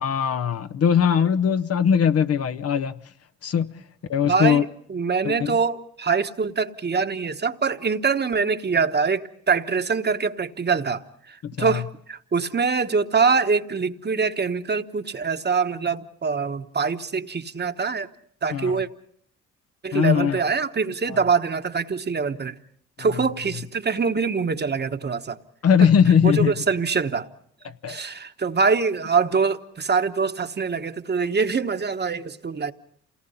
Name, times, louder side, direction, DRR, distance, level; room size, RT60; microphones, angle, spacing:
voice 1, 0.0-3.0 3.4-3.8 4.1-4.6 5.2-5.6 11.4-11.8 18.5-18.7 19.9-20.4 21.1-21.2 25.6-26.5 27.6-28.0, left 7 dB, 55° left, 0.8 m, -20 dB
voice 2, 4.3-18.1 18.4-18.9 19.8-22.6 23.0-25.4 25.8-25.9 26.2-27.3 27.9-32.7, right 5 dB, 35° right, 1.2 m, -24 dB
28.0 x 18.5 x 5.6 m
supercardioid pair, 60°, 30 cm